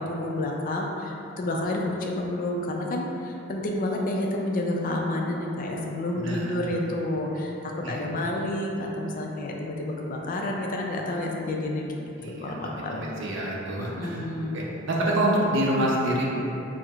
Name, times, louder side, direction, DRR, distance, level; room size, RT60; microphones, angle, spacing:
voice 1, 0.0-13.1 13.8-14.6, left 1 dB, 45° left, 0 dB, 0.3 m, -30 dB
voice 2, 6.2-6.7 7.8-8.1 12.2-14.2 14.5-16.2, right 1 dB, 65° right, -4 dB, 0.5 m, -27 dB
4.5 x 2.0 x 2.3 m, 2.9 s
head